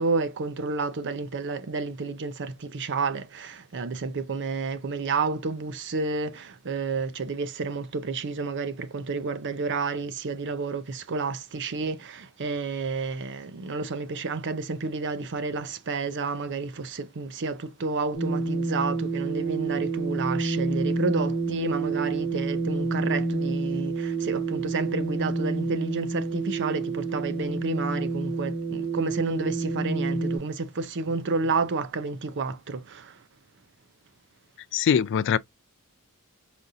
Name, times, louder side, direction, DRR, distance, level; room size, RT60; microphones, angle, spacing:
voice 1, 0.0-33.2, right 4 dB, 55° right, 0.6 m, -30 dB
sound 1, 18.1-30.4, right 3 dB, 85° right, 2.6 m, -28 dB
voice 2, 34.7-35.4, left 7 dB, 55° left, 0.3 m, -22 dB
5.1 x 2.4 x 2.7 m
head